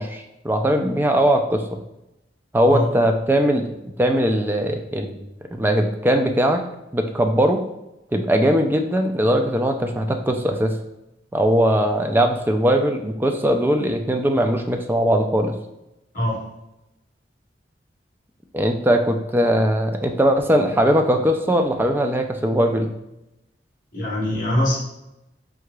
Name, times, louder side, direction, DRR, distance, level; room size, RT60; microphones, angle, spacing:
voice 1, 0.0-1.8 2.5-6.6 6.9-7.6 8.1-10.7 11.3-15.5 18.5-22.9, equal, 10° right, 4 dB, 0.4 m, -20 dB
voice 2, 23.9-24.8, left 1 dB, 50° left, -4 dB, 1.5 m, -22 dB
4.7 x 3.7 x 2.3 m, 0.90 s
head